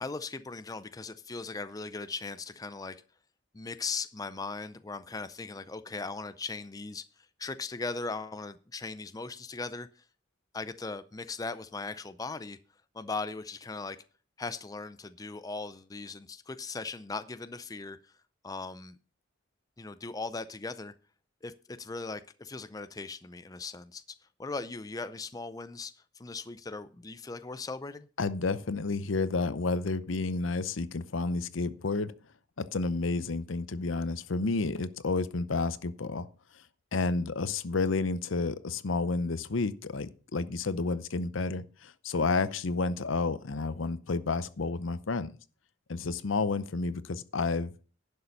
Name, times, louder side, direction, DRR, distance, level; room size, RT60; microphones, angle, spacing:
voice 1, 0.0-3.0 3.5-10.0 10.5-12.6 12.9-14.0 14.4-18.0 18.4-19.0 19.8-20.9 21.4-24.0 24.4-28.1, left 3 dB, 20° left, 0.5 m, -38 dB
voice 2, 28.2-32.1 32.6-36.3 36.9-45.3 45.9-47.7, left 3 dB, 75° left, 0.7 m, -30 dB
11.0 x 6.8 x 5.4 m
head